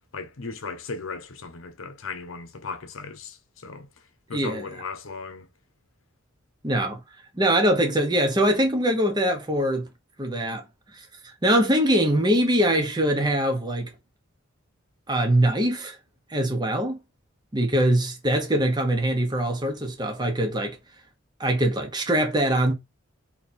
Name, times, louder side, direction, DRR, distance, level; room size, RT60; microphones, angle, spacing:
voice 1, 0.1-3.9 4.3-5.5, left 4 dB, 75° left, 0.8 m, -36 dB
voice 2, 4.3-4.7 6.6-7.0 7.3-9.9 10.2-10.6 10.9-11.0 11.4-13.9 15.1-16.0 16.3-17.0 17.5-20.8 21.4-22.7, right 1 dB, 20° right, 0.9 m, -22 dB
3.2 x 2.9 x 4.1 m
head